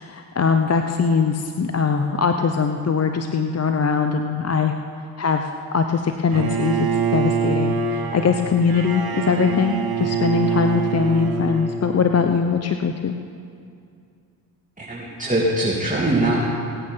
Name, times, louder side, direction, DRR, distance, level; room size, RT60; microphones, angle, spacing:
voice 1, 0.0-4.7 5.2-6.9 7.1-13.2, left 5 dB, 35° left, 6 dB, 0.8 m, -21 dB
Bowed string instrument, 6.3-12.4, right 6 dB, 55° right, 1.6 m, -25 dB
voice 2, 14.8-16.4, right 1 dB, 15° right, -5 dB, 2.9 m, -22 dB
18.0 x 9.0 x 5.7 m, 2.4 s
supercardioid pair, 45°, 43 cm